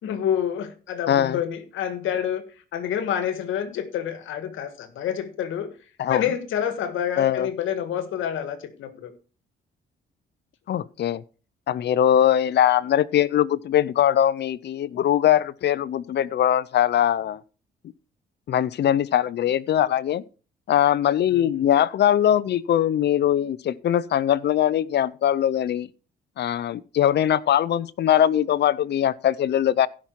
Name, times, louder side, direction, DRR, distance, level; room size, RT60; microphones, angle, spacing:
voice 1, 0.0-2.4 2.7-5.7 6.1-9.1 12.1-12.5 21.3-21.6, left 9 dB, 80° left, 1.6 m, -28 dB
voice 2, 1.1-1.4 6.0-6.2 7.2-7.5 10.7-11.2 11.7-17.4 18.5-20.2 20.7-25.9 26.4-29.9, left 10 dB, 60° left, 0.6 m, -21 dB
15.5 x 5.9 x 4.6 m
cardioid pair, 90°, 20 cm